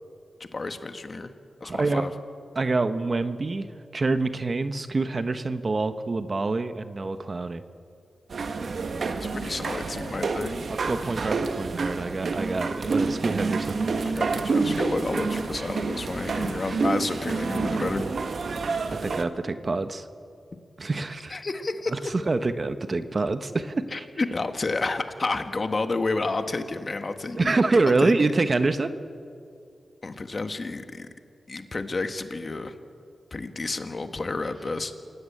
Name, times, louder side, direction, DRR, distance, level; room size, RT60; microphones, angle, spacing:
voice 1, 0.5-1.3 1.6-2.1 9.2-10.5 14.0-18.1 21.3-21.9 23.9-27.5 28.0-28.1 30.0-31.1 31.5-32.7 33.3-34.9, left 3 dB, 40° left, 8 dB, 1.7 m, -30 dB
voice 2, 1.6-2.0 2.5-3.7 3.9-7.6 10.8-13.8 16.6-16.8 18.5-18.6 18.9-20.1 20.8-21.4 21.9-24.1 27.3-28.9, right 3 dB, 40° right, 10 dB, 1.2 m, -26 dB
sound 1, 8.3-19.2, right 4 dB, 65° right, 1.4 m, -28 dB
28.0 x 16.5 x 8.7 m, 2.5 s
wide cardioid pair, 90°, 0 cm